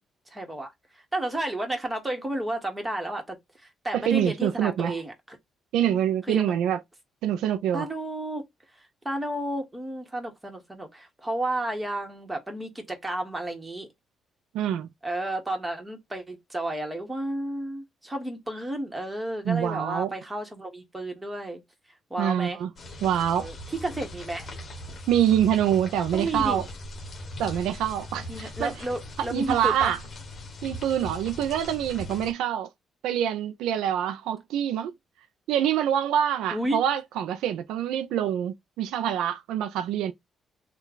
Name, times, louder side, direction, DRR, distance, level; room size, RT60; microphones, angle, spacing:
voice 1, 0.3-0.7 1.1-3.4 3.6-5.4 6.3-6.5 7.7-8.4 9.0-13.9 15.0-21.6 22.1-22.6 23.4-24.5 26.1-26.6 28.3-30.0 36.5-36.8, right 1 dB, 15° right, 1.4 m, -32 dB
voice 2, 3.9-4.9 5.7-6.8 7.2-7.9 14.5-14.9 19.5-20.1 22.2-22.7 23.0-23.5 25.1-26.6 27.4-28.7 29.2-30.0 30.6-32.7 33.0-34.9 35.5-40.1, right 10 dB, 85° right, 0.4 m, -25 dB
sound 1, 22.8-32.3, left 1 dB, 40° left, 1.1 m, -39 dB
3.1 x 2.3 x 3.7 m
cardioid pair, 90°, 0 cm